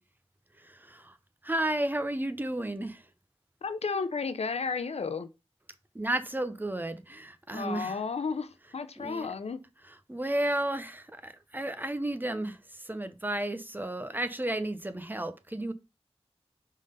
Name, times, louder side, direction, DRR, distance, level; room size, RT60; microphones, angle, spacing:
voice 1, 0.6-1.2 1.4-3.1 5.9-8.0 9.0-9.3 9.8-15.7, right 1 dB, 20° right, 0.6 m, -33 dB
voice 2, 3.6-5.3 7.5-9.6, left 5 dB, 90° left, 0.5 m, -33 dB
5.2 x 3.8 x 5.3 m
wide cardioid pair, 75°, 11 cm